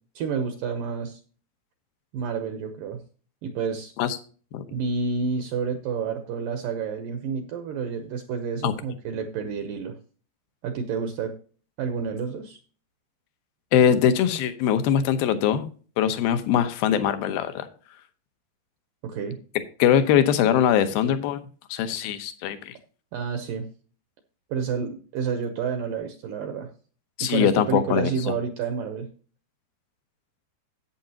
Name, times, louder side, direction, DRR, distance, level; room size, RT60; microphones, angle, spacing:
voice 1, 0.2-1.2 2.1-3.0 3.4-3.9 4.7-10.0 10.6-11.3 11.8-12.6 19.0-19.4 23.1-23.7 24.5-26.7 27.2-29.1, right 5 dB, 75° right, 7 dB, 2.1 m, -29 dB
voice 2, 13.7-15.7 16.0-17.7 19.8-22.8 27.2-28.3, left 9 dB, 70° left, 9 dB, 2.5 m, -22 dB
11.5 x 8.5 x 2.8 m, 0.39 s
omnidirectional pair, 4.8 m